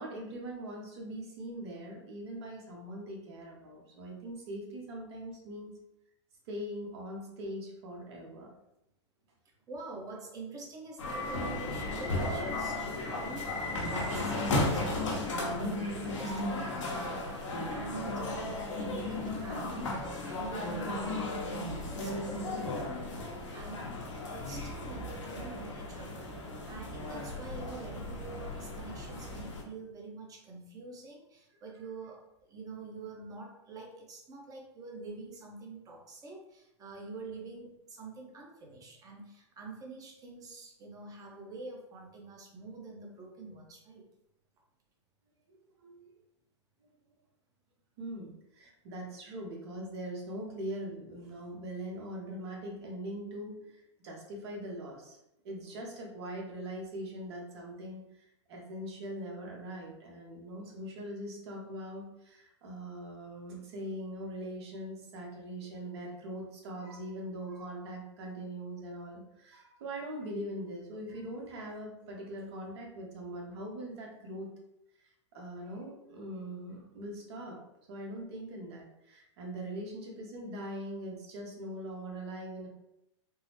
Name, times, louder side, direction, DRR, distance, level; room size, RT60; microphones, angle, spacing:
voice 1, 0.0-5.7 6.5-8.5 45.5-46.2 46.8-47.1 48.0-55.2 55.4-74.5 75.0-77.6 77.9-82.7, right 1 dB, 60° right, 0 dB, 1.0 m, -42 dB
voice 2, 9.4-13.6 14.0-23.9 24.2-44.1, right 3 dB, 25° right, 0 dB, 0.8 m, -46 dB
sound 1, 11.0-29.6, left 2 dB, 85° left, 0.8 m, -35 dB
3.6 x 2.0 x 2.9 m, 0.85 s
hypercardioid pair, 125°, 15 cm